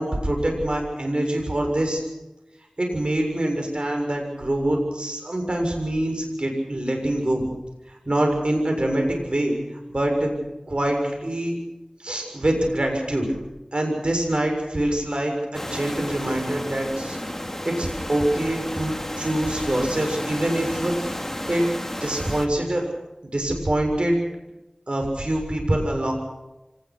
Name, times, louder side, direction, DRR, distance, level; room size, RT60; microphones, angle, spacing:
voice 1, 0.0-2.0 2.8-7.5 7.9-9.6 9.9-10.3 10.7-11.6 12.0-13.3 13.7-17.2 17.6-21.2 21.5-21.6 22.0-22.9 23.2-24.2 24.9-26.1, right 1 dB, 55° right, 2 dB, 7.0 m, -25 dB
sound 1, 15.5-22.5, left 1 dB, 15° left, 2.5 m, -32 dB
25.5 x 19.5 x 6.3 m, 0.98 s
wide cardioid pair, 40°, 2 cm